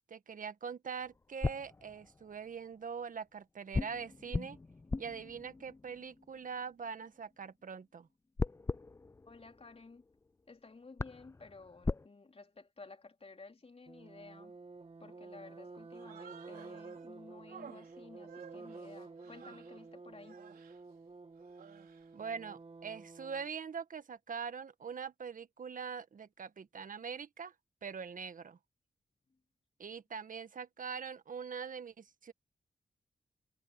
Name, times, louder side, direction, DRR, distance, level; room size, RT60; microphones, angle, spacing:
voice 1, 0.1-4.6 5.0-8.1 22.1-27.5 27.8-28.6 29.8-32.3, right 6 dB, 60° right, 1.6 m, -43 dB
sound 1, 1.0-2.6 3.7-7.0 8.4-10.3 10.6-10.7 11.0-12.1, left 3 dB, 20° left, 0.4 m, -39 dB
voice 2, 9.3-10.0 10.5-14.6 15.0-20.4, left 3 dB, 40° left, 3.7 m, -54 dB
sound 2, 13.9-23.5, right 3 dB, 40° right, 1.6 m, -51 dB
Human voice, 15.9-17.1 17.5-19.8 20.2-20.8 21.4-22.1, right 8 dB, 80° right, 4.6 m, -55 dB
supercardioid pair, 40°, 15 cm